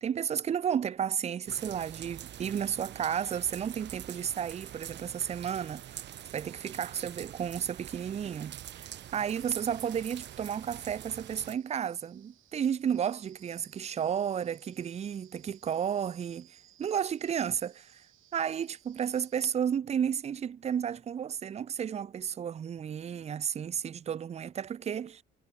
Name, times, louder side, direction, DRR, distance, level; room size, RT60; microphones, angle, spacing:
voice 1, 0.0-6.1 6.3-18.0 18.3-25.2, right 8 dB, 35° right, 0.4 m, -32 dB
sound 1, 1.5-11.6, right 11 dB, 65° right, 0.9 m, -45 dB
sound 2, 8.5-19.5, right 13 dB, 80° right, 3.8 m, -63 dB
cardioid pair, 90°, 20 cm